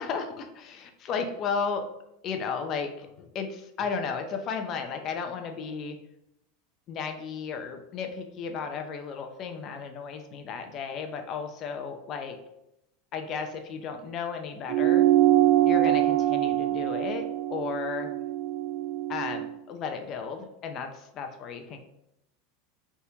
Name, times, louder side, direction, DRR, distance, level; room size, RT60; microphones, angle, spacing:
voice 1, 0.0-1.9 2.2-6.0 6.9-12.4 13.1-15.1 15.6-18.1 19.1-21.8, left 5 dB, 40° left, 5 dB, 0.6 m, -34 dB
sound 1, 14.7-19.5, right 14 dB, 65° right, 0.4 m, -24 dB
4.2 x 3.5 x 2.9 m, 0.85 s
supercardioid pair, 130°, 0 cm